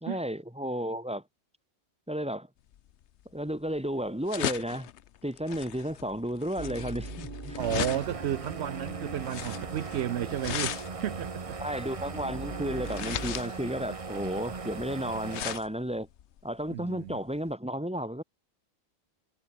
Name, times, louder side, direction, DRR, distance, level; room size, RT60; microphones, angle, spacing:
voice 1, 0.0-1.2 2.1-2.5 3.3-4.9 5.2-7.6 11.6-16.1 16.4-18.2, equal, 5° right, 1.8 m, -33 dB
sound 1, 2.7-17.5, left 11 dB, 85° left, 1.0 m, -39 dB
sound 2, 6.6-13.4, right 2 dB, 50° right, 3.7 m, -43 dB
sound 3, 7.6-15.6, right 4 dB, 30° right, 1.0 m, -39 dB
voice 2, 7.6-11.6 16.7-17.2, right 11 dB, 75° right, 0.9 m, -33 dB
omnidirectional pair, 1.1 m